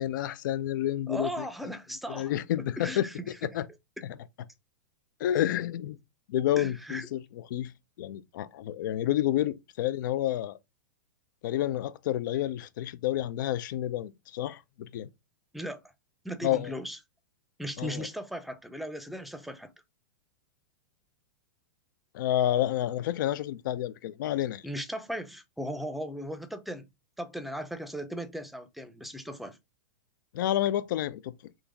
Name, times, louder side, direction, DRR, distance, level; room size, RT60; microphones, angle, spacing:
voice 1, 0.0-1.5 2.1-3.0 3.5-3.6 5.2-6.0 6.3-7.2 7.5-7.7 8.0-10.6 11.4-15.1 16.4-16.7 17.8-18.1 22.1-24.6 30.3-31.3, left 12 dB, 65° left, 0.5 m, -29 dB
voice 2, 1.1-2.3 2.8-3.2 6.6-7.1 15.5-15.8 16.2-17.0 17.6-19.7 24.6-26.9 27.2-29.6, equal, ahead, 0.6 m, -37 dB
3.9 x 3.0 x 3.5 m
hypercardioid pair, 120°, 11 cm